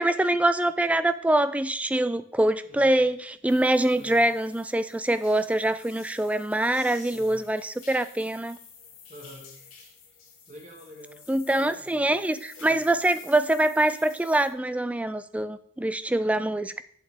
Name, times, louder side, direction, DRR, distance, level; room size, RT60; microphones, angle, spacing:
voice 1, 0.0-8.6 11.3-16.8, right 1 dB, 5° right, 13 dB, 0.3 m, -24 dB
voice 2, 2.6-3.0 3.9-4.3 6.7-7.4 9.1-9.5 10.5-11.3 11.6-12.2 12.6-12.9, equal, 35° right, 1 dB, 1.8 m, -47 dB
sound 1, 3.5-14.5, left 6 dB, 75° left, 2.8 m, -50 dB
8.3 x 7.5 x 3.6 m, 0.62 s
head